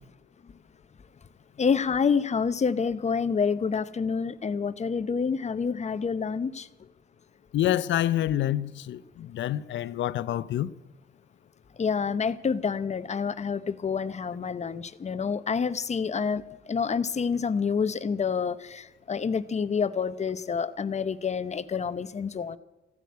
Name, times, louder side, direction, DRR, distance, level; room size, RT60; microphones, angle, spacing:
voice 1, 1.6-6.7 11.8-16.4 16.7-22.6, left 6 dB, 35° left, 0.8 m, -28 dB
voice 2, 7.5-10.7, left 12 dB, 70° left, 0.6 m, -27 dB
15.0 x 9.2 x 9.4 m
cardioid pair, 90°, 20 cm